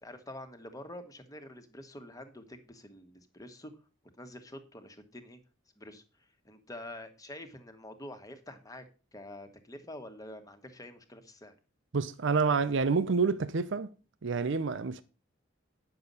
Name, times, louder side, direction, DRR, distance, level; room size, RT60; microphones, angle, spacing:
voice 1, 0.0-3.7 4.2-5.4 5.8-8.8 9.1-11.5, left 1 dB, 20° left, 1.5 m, -47 dB
voice 2, 11.9-13.9 14.2-15.0, right 4 dB, 65° right, 0.6 m, -28 dB
9.9 x 6.8 x 5.4 m
head